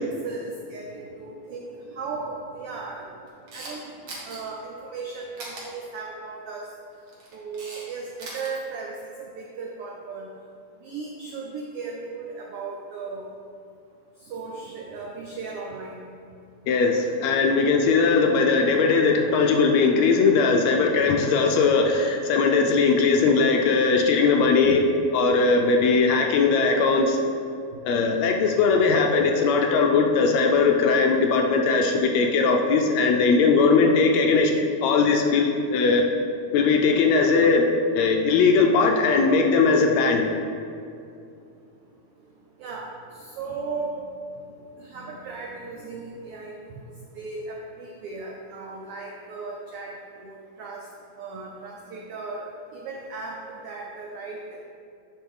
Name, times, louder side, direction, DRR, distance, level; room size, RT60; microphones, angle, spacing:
voice 1, 0.0-3.0 3.5-3.9 4.2-6.7 7.3-10.3 10.8-13.3 14.3-16.1 42.6-42.9 43.3-44.0 44.8-46.9 47.2-50.8 51.2-52.4 52.7-54.7, right 4 dB, 85° right, -1 dB, 1.3 m, -36 dB
Camera, 3.3-3.7 4.1-4.4 5.4-5.6 6.9-7.8 8.1-8.5, right 2 dB, 50° right, 1.6 m, -39 dB
voice 2, 16.7-24.8 25.1-27.2 27.8-34.5 34.8-36.0 36.5-37.7 37.9-40.2, left 4 dB, 75° left, 2 dB, 1.7 m, -19 dB
10.5 x 4.9 x 3.7 m, 2.5 s
omnidirectional pair, 3.4 m